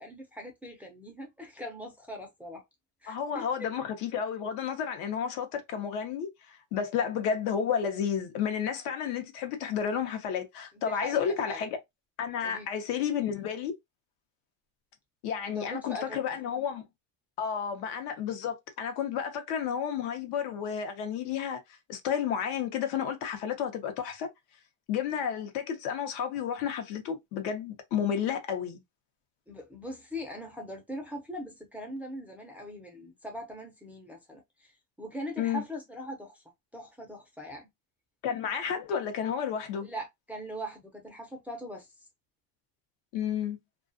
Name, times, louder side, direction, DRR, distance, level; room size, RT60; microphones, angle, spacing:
voice 1, 0.0-2.6 3.0-3.7 10.7-11.6 12.4-12.7 15.5-16.3 29.5-34.7 35.0-36.4 36.7-37.7 39.8-41.9, equal, 5° right, 0.5 m, -41 dB
voice 2, 3.1-11.7 12.2-13.7 15.2-16.8 17.4-21.6 21.9-24.3 24.9-28.8 35.4-35.6 38.2-39.9 43.1-43.6, left 8 dB, 65° left, 0.8 m, -31 dB
2.4 x 2.3 x 2.5 m
supercardioid pair, 120°, 43 cm